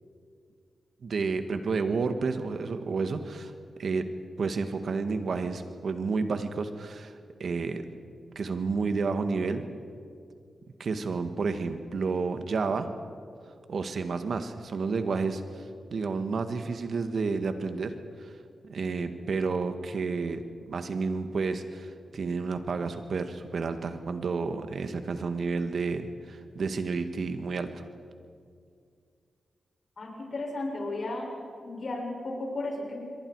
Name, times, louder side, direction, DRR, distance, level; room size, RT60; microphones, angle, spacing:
voice 1, 1.0-3.5 3.8-4.1 4.4-7.1 7.4-7.8 8.4-9.6 10.8-12.9 13.7-15.6 15.9-17.9 18.2-18.3 18.7-27.8, right 4 dB, 70° right, 8 dB, 1.7 m, -30 dB
voice 2, 30.0-31.3 31.6-33.0, left 2 dB, 60° left, -1 dB, 7.2 m, -34 dB
28.0 x 23.0 x 4.8 m, 2.3 s
supercardioid pair, 40°, 0 cm